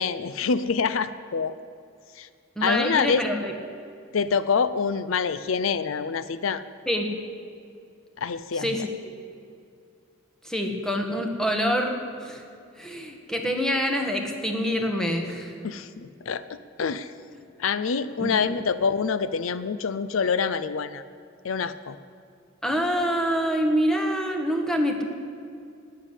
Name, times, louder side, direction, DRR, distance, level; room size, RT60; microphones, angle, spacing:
voice 1, 0.0-1.5 2.2-2.3 2.6-3.2 4.1-6.6 8.2-8.7 15.6-17.1 17.6-21.0 21.4-22.0, left 5 dB, 80° left, 14 dB, 0.5 m, -26 dB
voice 2, 2.5-3.5 6.9-7.1 8.5-8.9 10.4-12.4 12.7-15.6 17.3-17.4 18.2-18.6 22.6-25.0, equal, 5° left, 3 dB, 1.5 m, -26 dB
12.5 x 9.5 x 9.9 m, 2.4 s
head